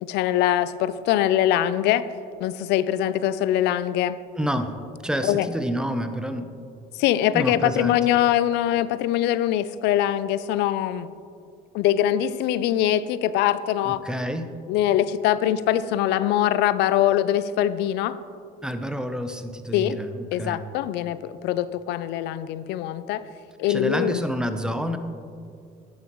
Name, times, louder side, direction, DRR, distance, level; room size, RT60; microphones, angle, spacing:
voice 1, 0.0-2.1 2.4-4.2 5.2-5.5 6.9-11.1 11.7-14.0 14.7-18.2 19.7-20.0 20.3-23.2 23.6-24.2, left 12 dB, 85° left, 15 dB, 0.4 m, -23 dB
voice 2, 4.4-4.8 5.0-6.5 7.3-8.1 13.8-14.6 18.6-20.6 23.7-25.0, equal, 5° right, 8 dB, 0.6 m, -28 dB
11.0 x 9.9 x 3.0 m, 2.4 s
cardioid pair, 110°, 17 cm